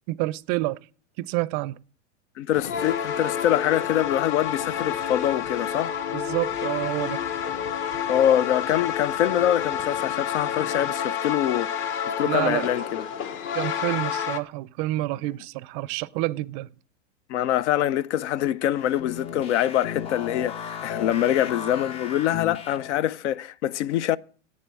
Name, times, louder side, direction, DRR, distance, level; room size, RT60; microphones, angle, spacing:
voice 1, 0.1-0.8 1.2-1.8 6.1-7.2 12.2-12.7 13.5-16.7, right 19 dB, 40° right, 0.5 m, -28 dB
voice 2, 2.4-6.0 8.1-11.8 12.1-13.1 17.3-24.2, left 11 dB, 65° left, 0.7 m, -24 dB
sound 1, 2.5-14.4, left 8 dB, 30° left, 1.0 m, -29 dB
sound 2, 18.7-23.1, left 8 dB, 15° left, 0.4 m, -35 dB
8.8 x 7.4 x 8.2 m
hypercardioid pair, 130°, 38 cm